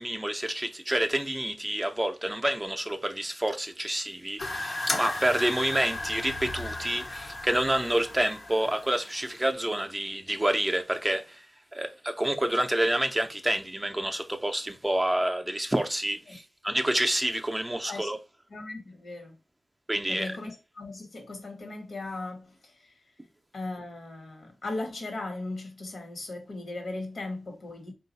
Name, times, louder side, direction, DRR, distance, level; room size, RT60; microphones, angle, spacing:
voice 1, 0.0-11.4 11.7-18.2 19.9-20.3, right 1 dB, 15° right, 0.5 m, -28 dB
sound 1, 4.4-9.5, left 2 dB, 50° left, 0.6 m, -35 dB
voice 2, 18.5-19.4 20.1-23.0 23.5-27.9, left 2 dB, 75° left, 1.2 m, -38 dB
3.8 x 2.3 x 4.0 m
wide cardioid pair, 95°, 0 cm